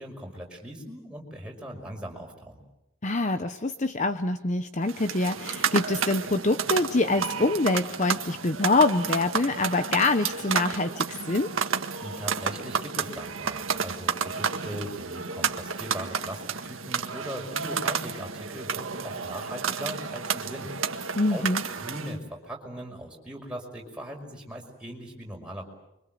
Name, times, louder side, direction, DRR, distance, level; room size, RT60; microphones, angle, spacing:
voice 1, 0.0-2.6 12.0-20.7 21.3-21.5 21.8-25.7, equal, 5° right, 0 dB, 5.8 m, -39 dB
voice 2, 3.0-11.5 21.2-21.6, left 2 dB, 35° left, 9 dB, 0.9 m, -25 dB
sound 1, 4.8-22.2, right 6 dB, 80° right, 1.7 m, -31 dB
29.5 x 24.5 x 7.8 m, 0.88 s
head